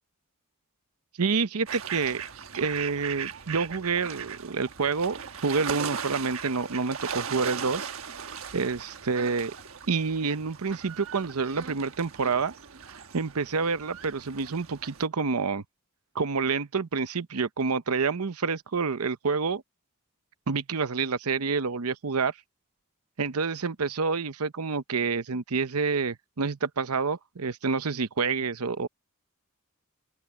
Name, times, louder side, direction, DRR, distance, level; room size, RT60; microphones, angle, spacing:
voice 1, 1.2-2.2 2.5-7.9 8.5-9.5 9.9-12.5 12.8-15.6 16.1-19.6 20.5-22.3 23.2-28.9, right 4 dB, 85° right, 0.8 m, -28 dB
sound 1, 1.7-15.1, right 7 dB, 70° right, 1.3 m, -38 dB
open air
head